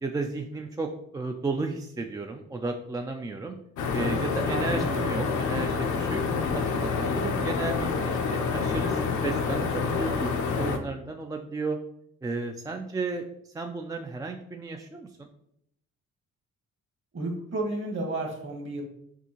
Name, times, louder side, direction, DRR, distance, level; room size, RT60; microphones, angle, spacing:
voice 1, 0.0-3.5 3.9-6.2 6.5-10.3 10.6-11.8 12.2-13.3 13.5-15.1, right 3 dB, 15° right, 4 dB, 0.3 m, -33 dB
sound 1, 3.8-10.8, left 5 dB, 70° left, 0.7 m, -27 dB
voice 2, 4.5-5.1 17.1-18.8, right 2 dB, 40° right, 2 dB, 1.2 m, -32 dB
6.0 x 2.8 x 2.9 m, 0.74 s
cardioid pair, 90°, 30 cm